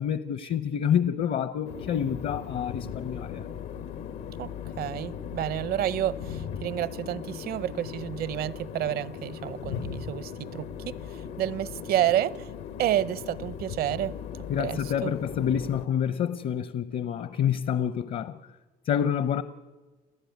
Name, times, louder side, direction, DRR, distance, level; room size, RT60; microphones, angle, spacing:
voice 1, 0.0-3.5 14.5-18.4 18.9-19.4, left 9 dB, 60° left, 0.9 m, -28 dB
sound 1, 1.6-15.9, left 8 dB, 90° left, 1.5 m, -38 dB
voice 2, 4.8-12.5 12.8-14.2 14.6-15.1, right 12 dB, 65° right, 0.8 m, -30 dB
29.5 x 15.0 x 9.5 m
cardioid pair, 110°, 17 cm